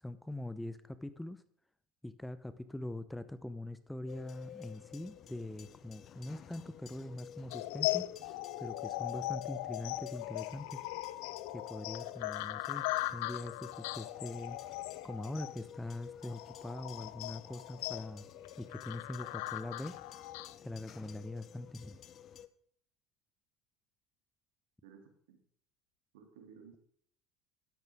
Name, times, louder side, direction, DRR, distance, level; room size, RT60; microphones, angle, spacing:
voice 1, 0.0-1.4 2.0-8.1 8.6-10.8 11.5-12.8 13.1-14.6 15.0-18.3 18.6-20.0 20.6-22.0, left 1 dB, 5° left, 13 dB, 0.8 m, -43 dB
sound 1, 4.1-22.5, left 9 dB, 45° left, 0.8 m, -53 dB
sound 2, 7.5-20.6, left 18 dB, 70° left, 0.5 m, -39 dB
voice 2, 26.1-26.8, right 7 dB, 75° right, 3 dB, 2.8 m, -55 dB
12.0 x 10.5 x 3.6 m, 0.63 s
hypercardioid pair, 75°, 0 cm